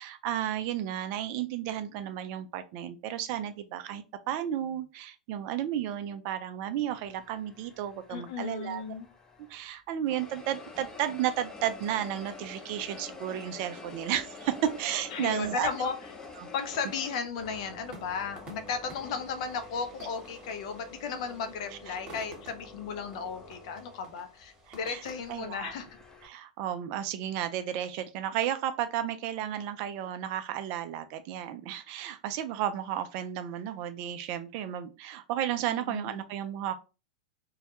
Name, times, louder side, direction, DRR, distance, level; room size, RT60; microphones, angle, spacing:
voice 1, 0.0-8.8 9.5-15.7 21.9-22.0 24.7-25.0 25.3-25.7 26.2-36.7, right 11 dB, 45° right, 10 dB, 0.3 m, -33 dB
sound 1, 6.9-9.7 10.1-26.3, left 3 dB, 15° left, 0.6 m, -48 dB
voice 2, 8.1-9.1 15.1-15.9 16.5-25.9 35.7-36.3, left 6 dB, 60° left, 8 dB, 0.5 m, -35 dB
sound 2, 14.3-25.4, right 2 dB, 30° right, 1.0 m, -53 dB
2.2 x 2.1 x 2.8 m, 0.31 s
hypercardioid pair, 110°, 4 cm